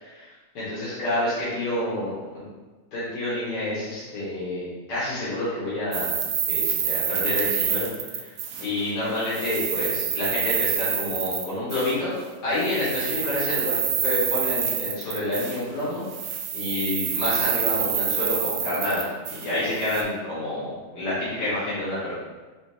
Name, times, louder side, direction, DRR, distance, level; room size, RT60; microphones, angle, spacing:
voice 1, 0.5-2.5 2.9-6.2 6.5-7.9 8.2-8.3 8.6-12.1 12.4-16.1 16.5-22.1, left 1 dB, 85° left, -11 dB, 2.0 m, -28 dB
sound 1, 5.9-8.9 9.2-12.0 12.6-15.8 16.1-20.0, right 7 dB, 70° right, 0.8 m, -27 dB
4.9 x 2.7 x 3.2 m, 1.3 s
omnidirectional pair, 1.8 m